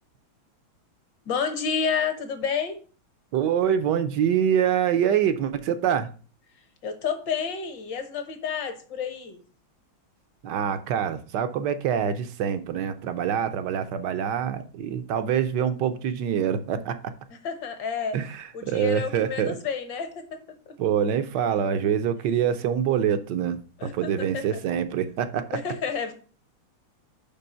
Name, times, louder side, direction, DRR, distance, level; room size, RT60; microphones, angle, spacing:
voice 1, 1.3-2.8 6.8-9.4 17.3-18.2 18.5-20.4 23.8-24.1 24.3-24.6 25.5-26.1, left 6 dB, 65° left, 7 dB, 1.7 m, -30 dB
voice 2, 3.3-6.1 10.4-17.0 18.1-19.6 20.8-23.6 23.9-25.6, right 8 dB, 70° right, 10 dB, 1.1 m, -25 dB
5.3 x 5.3 x 5.5 m, 0.39 s
omnidirectional pair, 2.3 m